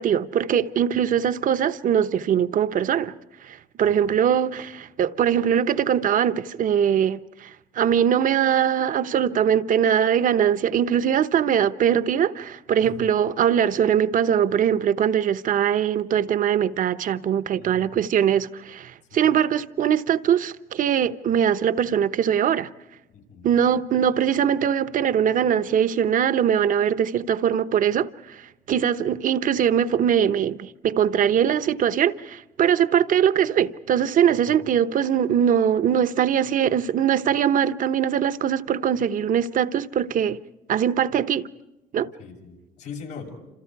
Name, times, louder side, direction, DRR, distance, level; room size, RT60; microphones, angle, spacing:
voice 1, 0.0-3.1 3.4-22.7 23.4-40.4 40.7-41.5 41.9-42.1, right 9 dB, 50° right, 1.0 m, -22 dB
voice 2, 3.8-4.1 12.8-12.9 17.6-18.0 19.1-19.2 23.1-23.5 34.5-34.6 42.2-43.3, left 6 dB, 90° left, 7.5 m, -41 dB
29.0 x 27.0 x 4.7 m
cardioid pair, 110°, 17 cm